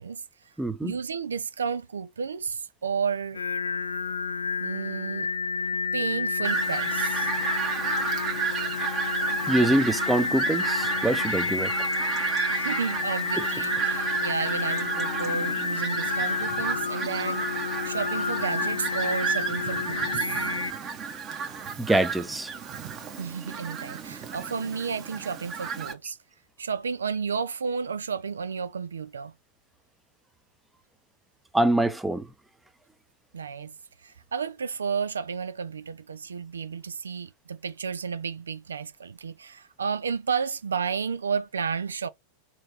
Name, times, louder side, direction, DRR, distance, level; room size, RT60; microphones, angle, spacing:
voice 1, 0.0-0.5 0.8-3.4 4.6-5.3 5.9-7.3 12.5-20.3 23.2-26.2 26.6-29.4 33.3-42.1, right 6 dB, 70° right, 0.3 m, -32 dB
voice 2, 0.6-0.9 9.5-11.9 13.4-13.5 21.8-22.5 31.5-32.3, right 1 dB, 5° right, 0.6 m, -24 dB
Singing, 3.3-20.7, left 5 dB, 75° left, 0.3 m, -30 dB
Fowl, 6.4-25.9, right 6 dB, 30° right, 1.1 m, -31 dB
4.3 x 3.1 x 4.0 m
figure-of-eight pair, 90°, 0 cm